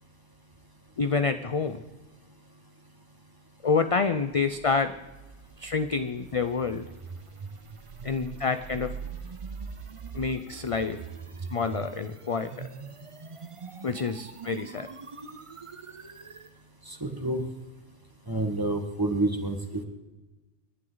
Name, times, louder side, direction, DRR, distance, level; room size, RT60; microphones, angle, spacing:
voice 1, 1.0-1.8 3.6-4.9 5.6-6.9 8.0-8.9 10.1-11.0 11.5-12.5 13.8-14.9, left 4 dB, 40° left, 9 dB, 0.5 m, -27 dB
sound 1, 4.4-16.5, right 5 dB, 35° right, 0.6 m, -42 dB
voice 2, 16.9-17.4 18.3-19.6, right 2 dB, 15° right, 4 dB, 1.7 m, -28 dB
28.5 x 11.0 x 4.0 m, 1.1 s
omnidirectional pair, 1.2 m